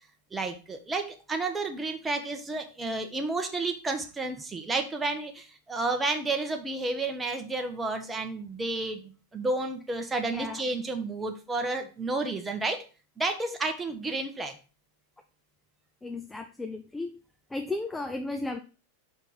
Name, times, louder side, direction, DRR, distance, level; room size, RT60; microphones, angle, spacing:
voice 1, 0.3-12.8 13.2-14.6, right 3 dB, 10° right, 4 dB, 1.0 m, -31 dB
voice 2, 10.3-10.6 16.0-17.1 17.5-18.6, left 2 dB, 10° left, 7 dB, 0.5 m, -34 dB
5.4 x 4.4 x 6.2 m, 0.35 s
figure-of-eight pair, 90°, 0 cm